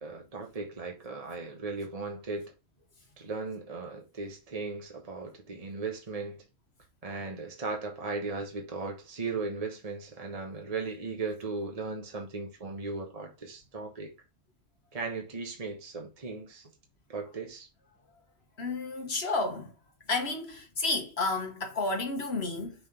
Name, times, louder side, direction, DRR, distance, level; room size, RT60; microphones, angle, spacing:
voice 1, 0.0-2.5 3.2-6.4 7.0-14.1 14.9-16.6 17.1-17.7, right 3 dB, 30° right, 1.3 m, -37 dB
voice 2, 18.6-19.7 20.1-22.7, left 3 dB, 60° left, 1.5 m, -31 dB
5.7 x 3.9 x 5.1 m
omnidirectional pair, 1.3 m